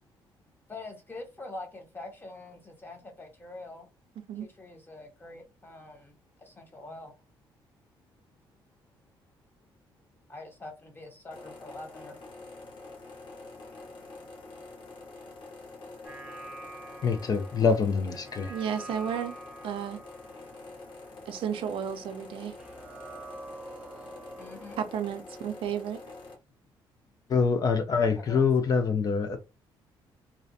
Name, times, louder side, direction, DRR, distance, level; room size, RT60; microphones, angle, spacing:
voice 1, 0.7-3.9 4.4-7.1 10.3-12.2 21.1-21.2 24.4-24.8 28.2-28.5, left 2 dB, 20° left, 0.9 m, -44 dB
sound 1, 11.3-26.3, left 3 dB, 55° left, 1.0 m, -46 dB
sound 2, 16.1-22.3 22.6-25.1, right 2 dB, 5° right, 0.8 m, -47 dB
voice 2, 17.0-18.5 27.3-29.4, left 5 dB, 40° left, 0.4 m, -25 dB
voice 3, 18.5-19.3 19.6-20.0 21.3-22.6 24.8-26.0, right 8 dB, 65° right, 0.4 m, -32 dB
2.4 x 2.1 x 2.6 m
cardioid pair, 100°, 10 cm